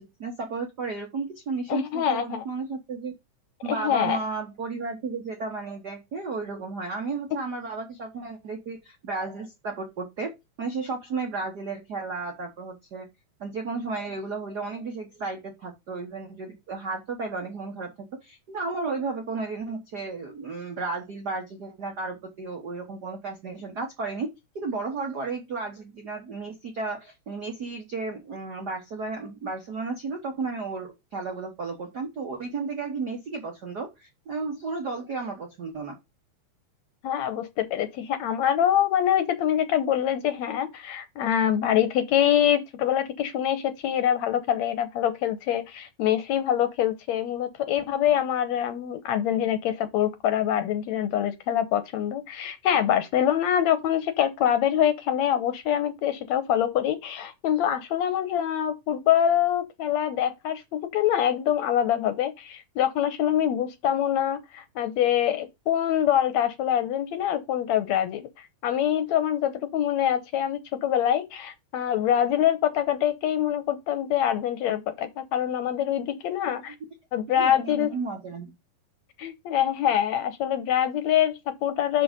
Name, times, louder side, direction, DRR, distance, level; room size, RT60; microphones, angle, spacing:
voice 1, 0.0-3.1 3.6-13.1 13.4-24.3 24.5-36.0 76.5-76.6 77.4-78.5, right 4 dB, 70° right, 0.9 m, -33 dB
voice 2, 1.7-2.4 3.7-4.2 37.0-68.3 68.6-76.8 77.1-77.9 79.2-82.0, left 10 dB, 70° left, 1.9 m, -25 dB
6.2 x 5.8 x 5.1 m
omnidirectional pair, 3.7 m